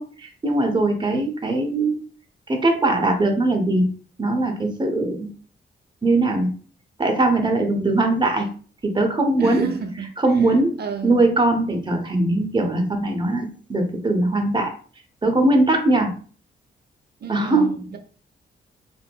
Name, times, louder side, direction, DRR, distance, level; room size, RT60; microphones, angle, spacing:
voice 1, 0.0-2.0 2.5-3.9 4.2-5.3 6.0-6.5 7.0-8.5 8.8-9.7 10.2-10.8 11.0-14.7 15.2-16.1 17.3-17.7, right 2 dB, 20° right, 0.8 m, -20 dB
voice 2, 9.4-10.1 10.3-10.5 10.8-11.2 17.2-18.0, right 6 dB, 55° right, 0.7 m, -30 dB
2.7 x 2.5 x 2.3 m
supercardioid pair, 55°, 20 cm